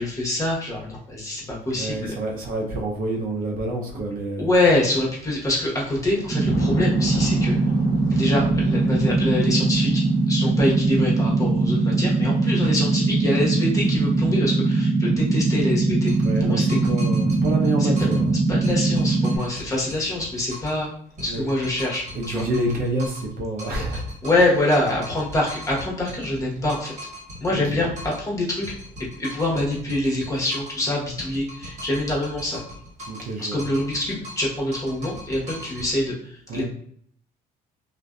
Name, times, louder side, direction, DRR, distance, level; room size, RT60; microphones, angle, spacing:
voice 1, 0.0-2.1 4.4-7.6 8.1-16.1 16.4-16.6 17.8-17.9 18.5-20.9 21.2-22.4 24.2-26.9 27.4-28.6 29.0-32.6 33.4-36.6, left 1 dB, 20° left, -4 dB, 1.0 m, -25 dB
voice 2, 1.7-4.5 16.2-18.4 21.2-21.5 22.1-24.2 27.5-27.8 33.1-33.6 36.5-36.6, right 2 dB, 60° right, 0 dB, 0.6 m, -28 dB
Thunder / Rain, 4.5-14.5, left 3 dB, 75° left, 0.5 m, -39 dB
sound 1, 6.3-19.4, right 3 dB, 25° right, 0.4 m, -21 dB
sound 2, 16.1-18.3 18.6-20.8 21.2-23.3 23.6-28.3 28.6-30.8 31.2-33.3 33.6-35.9, equal, 45° right, 1.3 m, -40 dB
2.5 x 2.2 x 2.3 m, 0.64 s
cardioid pair, 110°, 17 cm